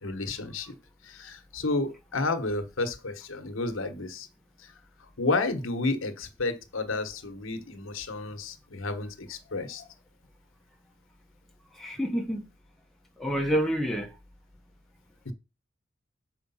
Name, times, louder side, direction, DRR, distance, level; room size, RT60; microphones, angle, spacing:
voice 1, 0.0-0.7 1.1-4.3 5.2-9.8 15.2-15.3, left 3 dB, 90° left, 1.2 m, -31 dB
voice 2, 11.8-12.4 13.2-14.1, equal, ahead, 1.2 m, -27 dB
6.7 x 5.0 x 5.6 m
head